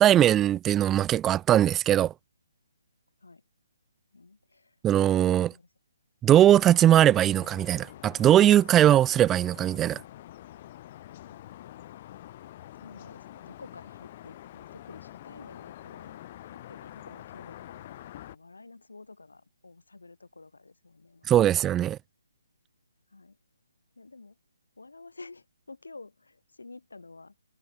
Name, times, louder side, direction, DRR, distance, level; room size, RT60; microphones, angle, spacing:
voice 1, 0.0-2.1 4.8-5.5 6.2-10.0 21.3-22.0, right 11 dB, 10° right, 0.3 m, -20 dB
voice 2, 4.1-4.8 5.5-5.7 11.8-12.2 12.7-21.5 23.1-23.4 24.0-24.4 24.8-27.3, left 3 dB, 65° left, 4.6 m, -50 dB
sound 1, 6.5-18.4, left 13 dB, 30° left, 4.6 m, -46 dB
figure-of-eight pair, 145°, 0 cm